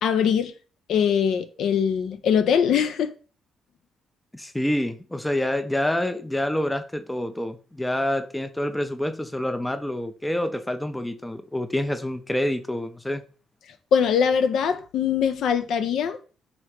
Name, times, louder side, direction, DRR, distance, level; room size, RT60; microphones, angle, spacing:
voice 1, 0.0-0.5 0.9-3.1 13.9-16.2, left 7 dB, 75° left, 0.4 m, -22 dB
voice 2, 4.3-13.2, left 1 dB, 10° left, 0.4 m, -27 dB
3.7 x 3.0 x 3.2 m
cardioid pair, 90°, 0 cm